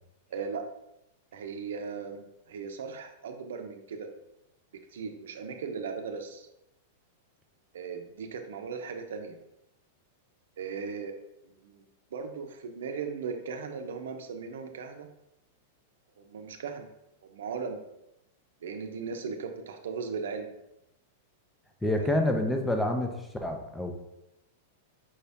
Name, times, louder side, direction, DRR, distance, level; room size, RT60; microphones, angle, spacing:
voice 1, 0.3-0.6 1.3-4.1 4.9-6.5 7.7-9.4 10.6-11.1 11.4-11.8 12.1-15.1 16.2-16.9 17.2-17.8 18.6-20.5 22.0-22.3, right 5 dB, 85° right, 6 dB, 0.7 m, -37 dB
voice 2, 21.8-23.9, left 1 dB, 5° left, 3 dB, 0.5 m, -28 dB
5.5 x 2.7 x 3.4 m, 0.85 s
supercardioid pair, 165°, 0 cm